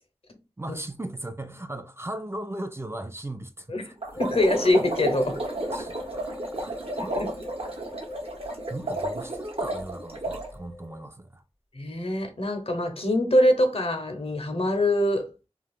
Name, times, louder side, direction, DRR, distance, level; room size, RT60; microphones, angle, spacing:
voice 1, 0.6-4.2 5.7-7.1 8.5-11.4, right 1 dB, 25° right, 0.4 m, -38 dB
sound 1, 4.0-10.5, right 1 dB, 65° right, 0.9 m, -32 dB
voice 2, 4.2-5.4 7.0-7.3 11.7-15.3, left 1 dB, 65° left, 0.7 m, -24 dB
sound 2, 4.2-11.1, left 2 dB, 35° left, 0.5 m, -42 dB
2.4 x 2.4 x 3.5 m
wide cardioid pair, 40°, 11 cm